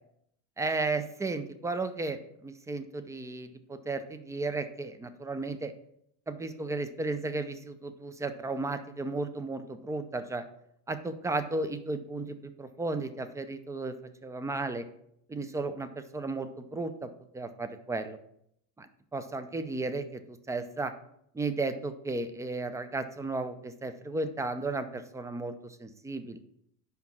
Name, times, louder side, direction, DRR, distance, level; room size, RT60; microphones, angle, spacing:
voice 1, 0.6-5.7 6.3-10.4 10.9-13.9 14.2-14.8 15.3-18.2 18.8-20.9 21.3-26.4, right 3 dB, 5° right, 10 dB, 0.4 m, -34 dB
5.8 x 5.1 x 6.0 m, 0.72 s
supercardioid pair, 105°, 48 cm